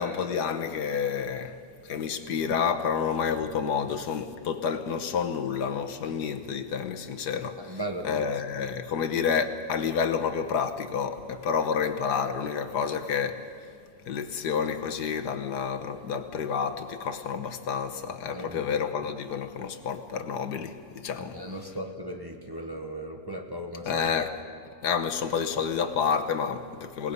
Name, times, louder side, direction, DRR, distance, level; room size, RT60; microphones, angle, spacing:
voice 1, 0.0-1.6 1.8-7.6 8.0-13.5 14.1-21.4 23.9-24.4 24.8-27.1, left 6 dB, 85° left, 1.7 m, -29 dB
voice 2, 7.6-8.3 18.3-18.7 21.2-24.0, right 1 dB, 15° right, 1.2 m, -37 dB
28.5 x 18.5 x 5.4 m
omnidirectional pair, 1.7 m